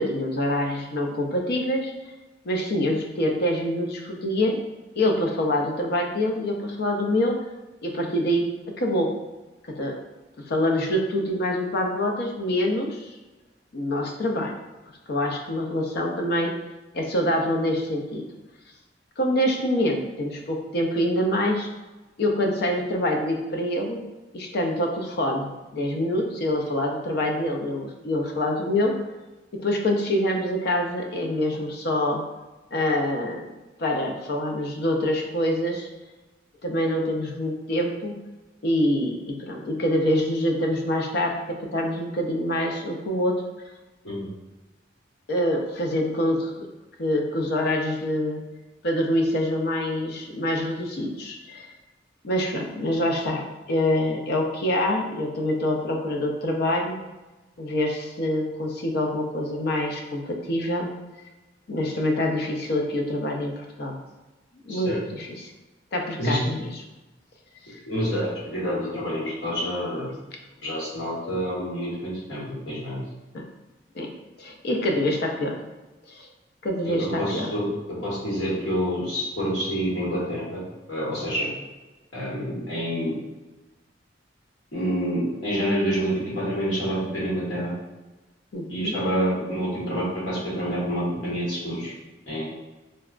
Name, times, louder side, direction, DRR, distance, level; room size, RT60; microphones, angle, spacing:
voice 1, 0.0-1.9 2.4-4.6 5.0-7.4 7.8-9.2 9.7-10.0 10.4-13.1 13.7-14.5 15.1-16.6 16.9-18.2 19.2-21.7 22.2-24.0 24.3-29.0 29.5-32.2 32.7-35.9 36.6-38.2 38.6-43.4 45.3-46.7 47.0-48.4 48.8-51.7 52.2-57.0 57.6-60.9 61.7-64.0 64.6-65.5 65.9-66.8 67.7-67.8 73.3-73.5 73.9-74.1 74.4-75.6 76.1-76.3 76.6-77.5 88.5-88.9, left 1 dB, 60° left, 2 dB, 0.5 m, -25 dB
voice 2, 67.8-70.1 70.6-73.0 76.8-77.7 78.0-80.6 80.9-81.5 82.1-83.1 84.7-87.7 88.7-91.9 92.3-92.4, equal, 85° left, -7 dB, 1.2 m, -27 dB
3.9 x 2.2 x 2.4 m, 1.1 s
head